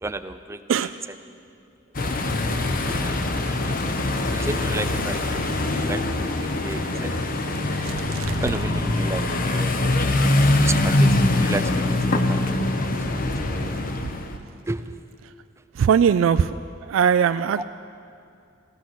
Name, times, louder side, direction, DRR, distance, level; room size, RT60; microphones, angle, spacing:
voice 1, 0.0-0.9 2.0-2.1 2.9-3.8 4.3-7.8 8.4-9.8 10.5-12.7 13.1-13.2 13.6-13.8 14.7-14.8 17.6-17.7, right 2 dB, 15° right, 11 dB, 0.4 m, -34 dB
sound 1, 1.9-14.4, left 2 dB, 45° left, 0.9 m, -23 dB
voice 2, 7.8-8.4 15.7-16.5 16.8-17.6, right 7 dB, 85° right, 11 dB, 0.3 m, -20 dB
15.5 x 14.0 x 6.1 m, 2.4 s
head